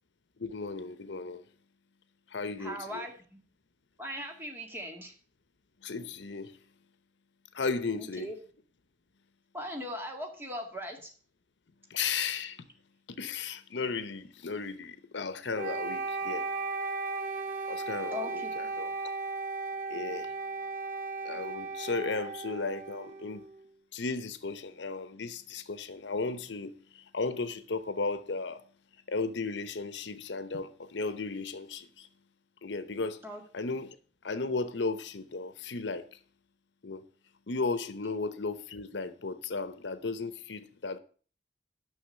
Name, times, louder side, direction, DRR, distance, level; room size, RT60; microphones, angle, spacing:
voice 1, 0.4-1.4 2.3-3.0 5.8-6.6 7.5-8.3 11.9-12.7 13.1-16.5 17.7-18.9 19.9-20.3 21.2-23.4 23.9-28.6 29.1-32.1 32.6-33.2 33.5-34.0 34.2-36.2 36.8-37.0 37.5-41.0, left 4 dB, 80° left, 0.8 m, -35 dB
voice 2, 2.6-3.4 4.0-5.1 7.9-8.3 9.5-11.1 18.1-18.7 33.2-33.4, equal, 10° right, 1.9 m, -39 dB
Wind instrument woodwind instrument, 15.5-23.6, right 3 dB, 50° right, 0.9 m, -36 dB
10.0 x 6.3 x 6.4 m
head